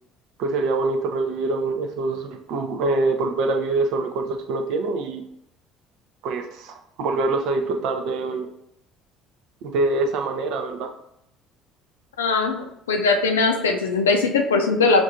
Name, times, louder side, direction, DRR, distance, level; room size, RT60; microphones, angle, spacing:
voice 1, 0.4-5.2 6.2-8.5 9.6-10.9, right 3 dB, 60° right, 6 dB, 0.5 m, -25 dB
voice 2, 12.2-15.0, left 4 dB, 80° left, 4 dB, 0.5 m, -20 dB
5.9 x 2.6 x 2.6 m, 0.77 s
figure-of-eight pair, 55°, 0 cm